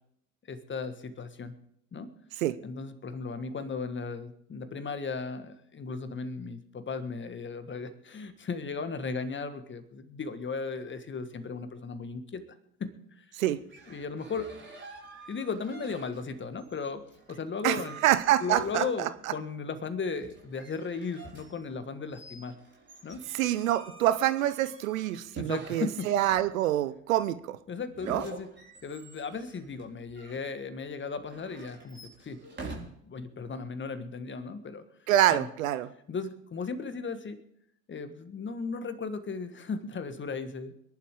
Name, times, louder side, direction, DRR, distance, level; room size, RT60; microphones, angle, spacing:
voice 1, 0.5-1.6 1.9-2.1 2.6-12.4 12.8-13.2 13.9-14.5 15.3-17.0 17.3-18.0 18.4-22.6 23.0-23.2 25.3-26.1 27.7-28.5 28.8-32.4 33.0-34.8 35.3-35.5 36.1-37.4 37.9-40.7, left 4 dB, 25° left, 10 dB, 1.7 m, -36 dB
sound 1, 13.6-16.3 16.6-19.2 20.2-26.8 27.9-30.4 31.2-32.8, right 3 dB, 25° right, 5.0 m, -48 dB
voice 2, 17.6-19.1 23.3-27.6 28.0-28.2 35.1-35.9, right 13 dB, 70° right, 14 dB, 0.9 m, -26 dB
25.0 x 11.0 x 3.8 m, 0.72 s
figure-of-eight pair, 60°, 42 cm